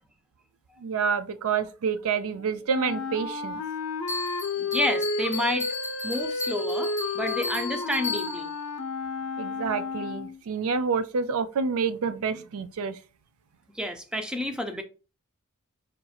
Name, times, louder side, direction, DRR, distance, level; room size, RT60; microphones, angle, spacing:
voice 1, 0.8-3.6 9.4-13.0, right 5 dB, 65° right, 0.4 m, -28 dB
Wind instrument woodwind instrument, 2.7-10.4, left 3 dB, 70° left, 0.5 m, -32 dB
Bell, 4.1-8.6, left 3 dB, 30° right, 1.7 m, -35 dB
voice 2, 4.6-5.7 6.0-8.5 13.8-14.8, equal, 5° right, 0.4 m, -30 dB
5.0 x 2.8 x 2.3 m
head